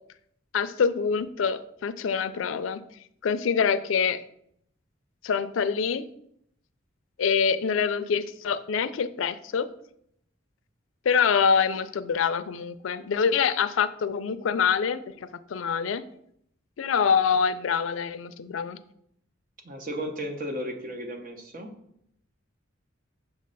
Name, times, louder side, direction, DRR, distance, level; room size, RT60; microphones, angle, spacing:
voice 1, 0.5-2.8 3.2-4.2 5.2-6.1 7.2-9.7 11.1-16.0 16.8-18.8, left 6 dB, 90° left, 13 dB, 0.4 m, -25 dB
voice 2, 19.6-21.7, equal, 45° right, 4 dB, 0.9 m, -34 dB
6.1 x 3.2 x 5.3 m, 0.72 s
head